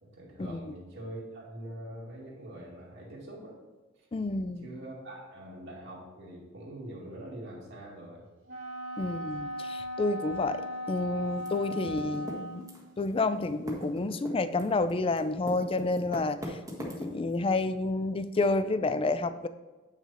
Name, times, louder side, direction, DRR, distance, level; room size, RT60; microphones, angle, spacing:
voice 1, 0.0-3.5 4.6-8.2 17.0-17.1, right 1 dB, 65° right, -5 dB, 2.3 m, -44 dB
voice 2, 4.1-4.7 9.0-12.7 13.0-19.5, left 2 dB, 30° left, 13 dB, 0.4 m, -30 dB
Wind instrument woodwind instrument, 8.5-12.8, left 1 dB, 85° right, 2.9 m, -37 dB
Typing, 11.4-13.1 13.4-17.4, equal, 15° right, 1.5 m, -39 dB
8.8 x 6.1 x 4.2 m, 1.2 s
head